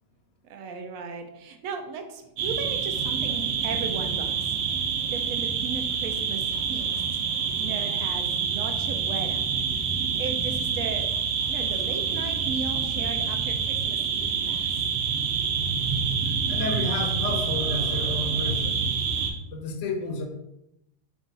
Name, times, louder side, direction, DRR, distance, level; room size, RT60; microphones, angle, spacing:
voice 1, 0.4-4.5 5.1-7.0 7.6-9.4 10.2-11.1 11.5-14.7, right 5 dB, 70° right, 5 dB, 0.9 m, -36 dB
sound 1, 2.4-19.3, right 6 dB, 90° right, 1.2 m, -27 dB
voice 2, 16.5-18.8 19.5-20.2, left 3 dB, 60° left, 1 dB, 0.9 m, -31 dB
3.8 x 2.4 x 3.8 m, 0.85 s
omnidirectional pair, 1.8 m